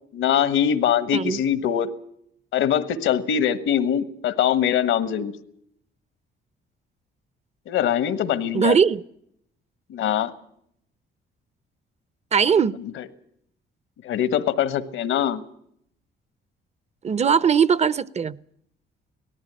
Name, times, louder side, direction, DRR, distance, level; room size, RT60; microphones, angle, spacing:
voice 1, 0.1-1.9 2.5-5.3 7.7-8.7 9.9-10.3 12.8-13.1 14.0-15.4, left 9 dB, 85° left, 13 dB, 1.5 m, -23 dB
voice 2, 8.5-9.0 12.3-12.8 17.0-18.4, right 6 dB, 35° right, 20 dB, 0.7 m, -20 dB
18.5 x 14.5 x 10.0 m, 0.71 s
cardioid pair, 90°, 20 cm